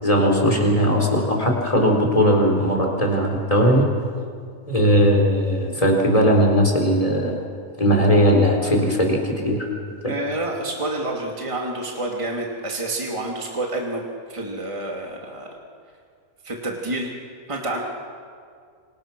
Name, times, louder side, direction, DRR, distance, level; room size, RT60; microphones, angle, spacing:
voice 1, 0.0-3.8 4.7-7.5 7.8-9.7 10.0-10.1, equal, 25° left, 0 dB, 4.6 m, -18 dB
voice 2, 10.1-14.0 14.3-15.5 16.4-17.1 17.5-17.8, right 2 dB, 20° right, -1 dB, 2.5 m, -28 dB
27.5 x 26.5 x 6.1 m, 2.2 s
omnidirectional pair, 1.5 m